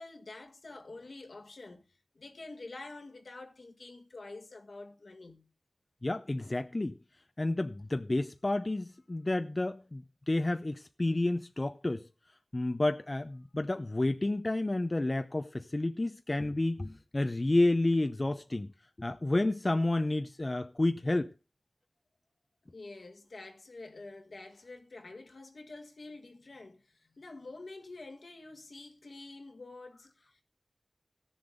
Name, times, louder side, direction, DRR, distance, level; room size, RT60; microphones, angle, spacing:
voice 1, 0.0-5.5 22.7-30.4, left 2 dB, 75° left, 1.6 m, -48 dB
voice 2, 6.0-7.0 7.4-12.0 12.5-18.7 19.0-21.3, left 2 dB, 40° left, 0.6 m, -30 dB
15.0 x 7.1 x 5.2 m
wide cardioid pair, 45°, 0 cm